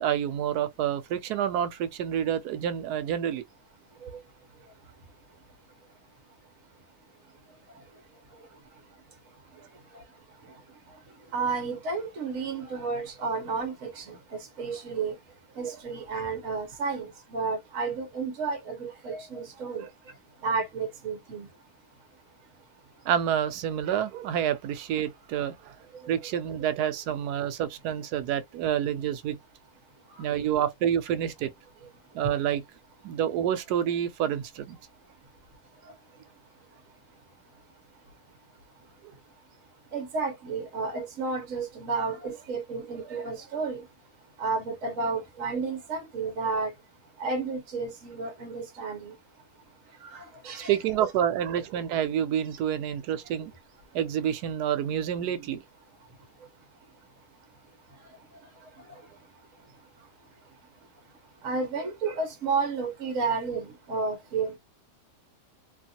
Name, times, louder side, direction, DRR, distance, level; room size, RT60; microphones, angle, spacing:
voice 1, 0.0-3.4 19.8-19.9 23.0-25.7 26.1-29.4 30.2-31.5 32.1-32.6 33.0-34.8 50.7-53.5 53.9-55.6, right 9 dB, 85° right, 1.1 m, -28 dB
voice 2, 11.3-14.2 14.6-15.1 15.6-19.8 20.4-21.5 39.9-43.8 44.4-46.7 47.2-49.1 50.1-51.1 61.4-64.6, right 4 dB, 60° right, 1.3 m, -31 dB
3.0 x 2.5 x 2.7 m
omnidirectional pair, 1.7 m